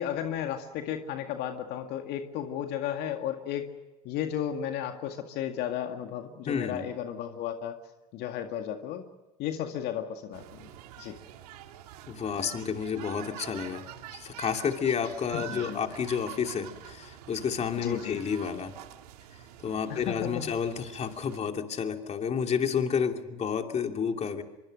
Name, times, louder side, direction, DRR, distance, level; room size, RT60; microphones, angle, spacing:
voice 1, 0.0-3.7 4.0-7.8 8.1-9.1 9.4-10.7 11.0-11.2 15.3-15.8 17.8-18.2 19.9-20.4, left 10 dB, 60° left, 5 dB, 2.0 m, -34 dB
voice 2, 6.5-6.8 12.1-13.8 14.1-18.7 19.6-24.4, left 7 dB, 35° left, 5 dB, 2.8 m, -30 dB
sound 1, 10.3-21.4, right 12 dB, 80° right, 2.3 m, -46 dB
24.5 x 24.0 x 6.6 m, 1.1 s
hypercardioid pair, 90°, 20 cm